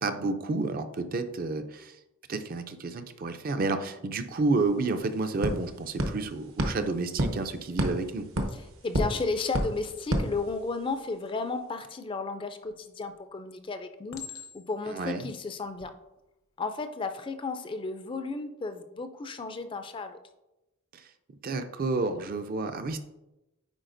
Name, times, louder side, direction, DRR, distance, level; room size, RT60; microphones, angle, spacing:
voice 1, 0.0-1.9 2.3-8.3 14.9-15.3 20.9-21.0 21.4-23.0, right 3 dB, 40° right, 8 dB, 0.4 m, -30 dB
sound 1, 4.3-4.4 4.6-11.0, equal, 70° right, 0.9 m, -32 dB
voice 2, 8.5-14.2 14.5-15.9 16.6-20.2, left 3 dB, 25° left, 8 dB, 0.3 m, -33 dB
Chink clink, 12.6-13.1 14.1-14.9 15.6-15.9, left 7 dB, 75° left, 0.8 m, -44 dB
9.0 x 4.1 x 2.6 m, 0.95 s
head